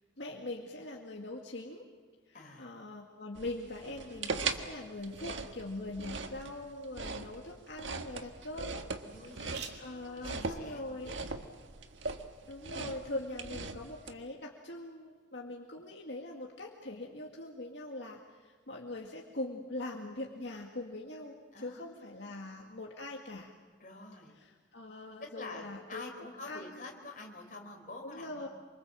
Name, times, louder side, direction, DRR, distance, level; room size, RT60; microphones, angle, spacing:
voice 1, 0.2-1.9 2.3-8.9 9.5-11.1 12.5-23.5 24.4-26.1 26.5-26.8 28.0-28.5, left 2 dB, 70° left, 0 dB, 2.1 m, -42 dB
voice 2, 2.3-2.7 9.0-11.4 21.5-22.4 23.8-24.3 25.2-28.5, left 2 dB, 45° left, 2 dB, 4.4 m, -48 dB
sound 1, 3.4-14.1, right 4 dB, 85° right, 1.6 m, -40 dB
sound 2, 5.5-13.0, right 6 dB, 65° right, 2.6 m, -55 dB
27.0 x 24.5 x 7.6 m, 1.5 s
head